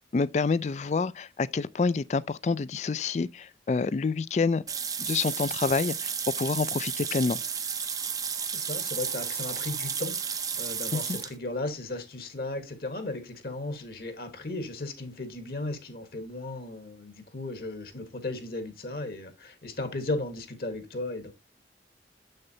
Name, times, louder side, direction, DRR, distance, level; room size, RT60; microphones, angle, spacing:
voice 1, 0.1-4.6 5.0-6.1 6.4-7.4 10.9-11.2, left 4 dB, 40° left, 0.3 m, -27 dB
sound 1, 4.7-11.3, right 7 dB, 20° right, 0.5 m, -32 dB
voice 2, 8.5-21.3, left 2 dB, 55° left, 1.3 m, -36 dB
7.1 x 6.5 x 2.7 m
head